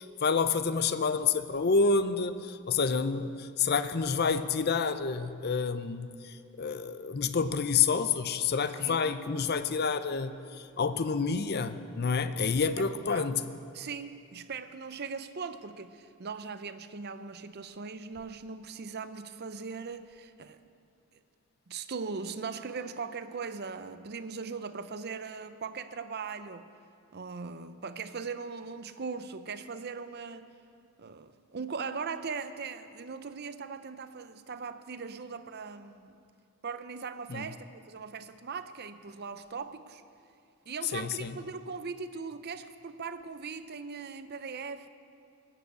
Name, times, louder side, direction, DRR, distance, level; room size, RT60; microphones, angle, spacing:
voice 1, 0.0-13.5 37.3-37.5 40.9-41.4, left 5 dB, 45° left, 11 dB, 0.5 m, -29 dB
voice 2, 8.8-9.1 12.8-13.3 13.7-20.6 21.7-26.7 27.1-30.6 31.0-36.2 36.6-40.0 40.7-44.9, right 5 dB, 45° right, 11 dB, 0.6 m, -39 dB
18.5 x 7.7 x 8.1 m, 2.4 s
head